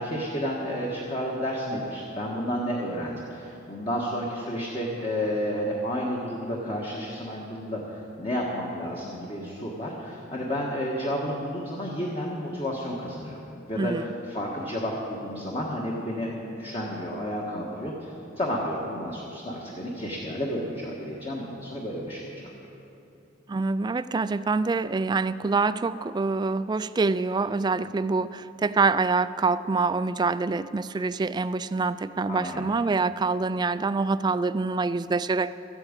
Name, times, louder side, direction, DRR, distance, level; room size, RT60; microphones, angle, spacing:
voice 1, 0.0-13.4 13.7-22.6 32.3-32.6, equal, 30° left, -3 dB, 1.5 m, -31 dB
voice 2, 13.8-14.1 23.5-35.6, right 4 dB, 20° right, 14 dB, 0.3 m, -26 dB
13.5 x 8.9 x 8.8 m, 2.8 s
head